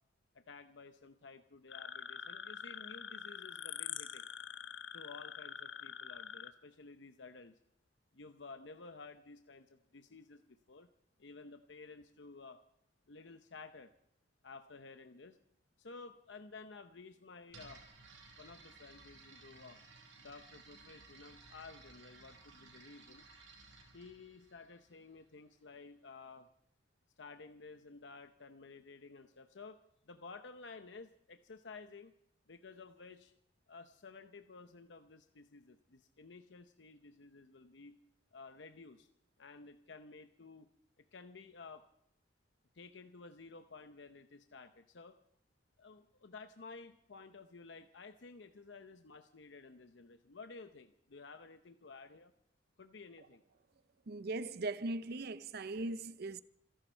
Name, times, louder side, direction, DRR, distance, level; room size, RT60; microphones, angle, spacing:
voice 1, 0.3-4.3 4.9-7.5 8.1-10.9 11.2-12.6 13.1-13.9 14.4-15.4 15.8-17.8 18.4-19.8 20.2-23.2 23.9-26.5 27.2-29.8 30.1-32.1 32.5-33.3 33.7-38.0 38.3-39.1 39.4-40.7 41.0-41.8 42.7-45.2 45.8-52.3 52.8-53.4, left 4 dB, 70° left, 0.8 m, -53 dB
sound 1, 1.7-6.5, left 8 dB, 85° left, 1.1 m, -45 dB
sound 2, 17.5-25.3, right 3 dB, 90° right, 4.8 m, -58 dB
voice 2, 54.1-56.4, right 2 dB, 60° right, 0.6 m, -39 dB
27.5 x 11.5 x 4.5 m
head